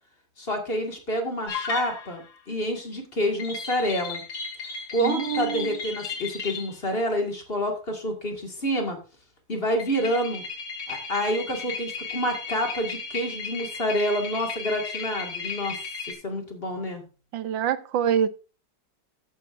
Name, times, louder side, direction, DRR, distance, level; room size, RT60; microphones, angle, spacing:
voice 1, 0.4-4.2 4.9-9.0 9.5-10.4 10.9-15.8 16.1-17.0, equal, 30° left, 2.2 m, -28 dB
sound 1, 1.5-2.3 3.4-6.8 9.8-16.1, left 4 dB, 85° left, 4.2 m, -35 dB
voice 2, 5.0-5.8 17.3-18.3, right 9 dB, 80° right, 1.4 m, -26 dB
14.0 x 9.1 x 2.6 m
omnidirectional pair, 2.0 m